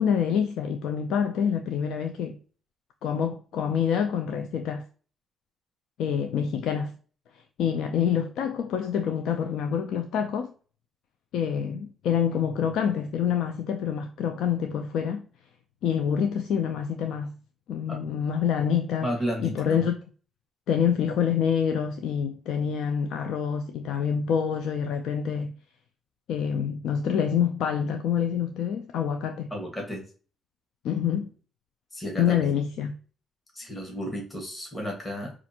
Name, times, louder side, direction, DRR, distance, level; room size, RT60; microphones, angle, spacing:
voice 1, 0.0-2.4 3.0-4.8 6.0-6.9 7.6-10.5 11.3-15.2 15.8-17.3 17.7-19.1 19.4-19.9 20.7-25.5 26.3-29.5 30.8-31.3 32.2-32.9, left 8 dB, 80° left, 0.3 m, -26 dB
voice 2, 19.0-19.8 29.5-30.0 31.9-32.5 33.5-35.3, equal, 20° left, 1.5 m, -33 dB
4.9 x 2.4 x 2.8 m
cardioid pair, 90°, 0 cm